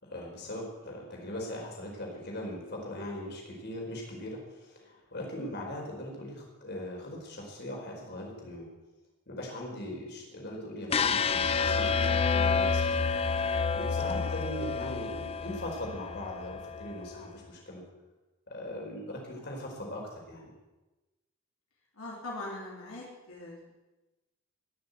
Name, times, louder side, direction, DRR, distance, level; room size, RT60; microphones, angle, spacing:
voice 1, 0.0-8.7 9.3-12.9 13.7-17.8 18.5-20.5, left 1 dB, 50° left, 0 dB, 4.5 m, -40 dB
sound 1, 10.9-17.0, left 5 dB, 25° left, 0.4 m, -29 dB
voice 2, 21.9-23.7, left 2 dB, 80° left, -3 dB, 3.3 m, -42 dB
20.5 x 6.8 x 8.3 m, 1.1 s
head